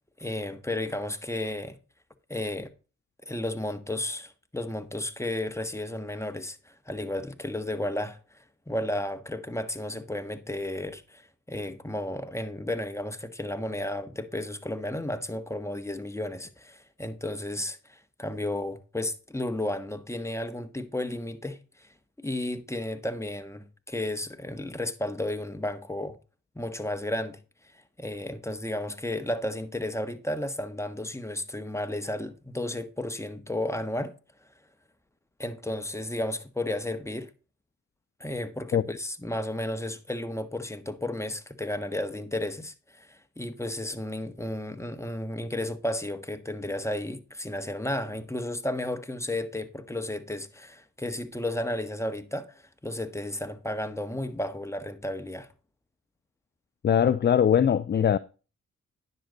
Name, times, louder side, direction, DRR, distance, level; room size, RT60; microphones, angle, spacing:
voice 1, 0.2-1.8 2.3-2.7 3.2-21.9 22.2-26.2 26.5-27.4 27.7-34.1 35.4-37.3 38.2-55.5, left 1 dB, 10° left, 1.4 m, -33 dB
voice 2, 56.8-58.2, left 8 dB, 35° left, 0.5 m, -21 dB
10.0 x 6.7 x 3.9 m
supercardioid pair, 45°, 30 cm